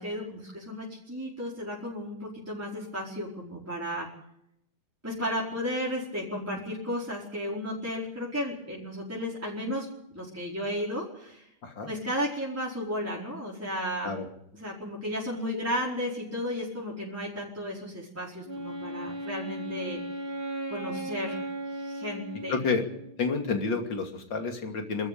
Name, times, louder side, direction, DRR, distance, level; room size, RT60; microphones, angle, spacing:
voice 1, 0.0-4.1 5.0-9.9 10.1-11.5 11.8-14.1 14.5-20.0 20.7-21.4 21.7-22.6, equal, 5° right, -5 dB, 4.8 m, -34 dB
Wind instrument woodwind instrument, 18.4-23.3, right 1 dB, 10° left, 2.1 m, -37 dB
voice 2, 22.5-22.8 23.2-25.1, left 4 dB, 60° left, 5 dB, 3.4 m, -29 dB
24.5 x 13.5 x 8.6 m, 0.77 s
omnidirectional pair, 2.3 m